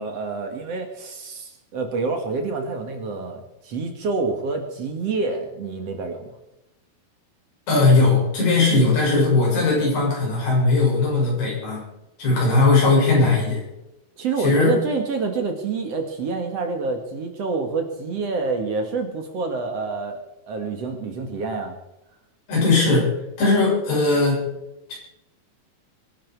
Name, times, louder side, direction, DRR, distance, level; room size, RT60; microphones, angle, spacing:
voice 1, 0.0-6.3 14.2-20.2 20.5-21.8, right 4 dB, 50° right, 4 dB, 2.2 m, -27 dB
voice 2, 7.7-11.8 12.2-13.6 14.4-14.8 22.5-23.1 23.4-24.4 24.9-25.0, left 3 dB, 75° left, -4 dB, 8.8 m, -18 dB
23.5 x 11.0 x 4.7 m, 0.90 s
omnidirectional pair, 4.6 m